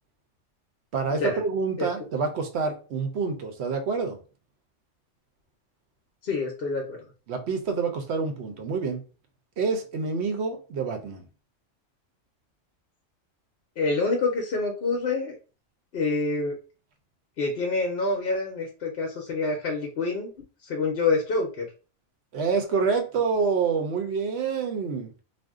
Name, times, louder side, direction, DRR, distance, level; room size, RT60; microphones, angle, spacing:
voice 1, 0.9-4.2 7.3-9.0 9.6-11.3 22.3-25.1, right 5 dB, 65° right, 0.8 m, -27 dB
voice 2, 6.2-7.0 13.8-15.3 15.9-16.6 17.4-20.3 20.6-21.7, left 3 dB, 55° left, 0.7 m, -27 dB
2.5 x 2.1 x 3.5 m
omnidirectional pair, 1.3 m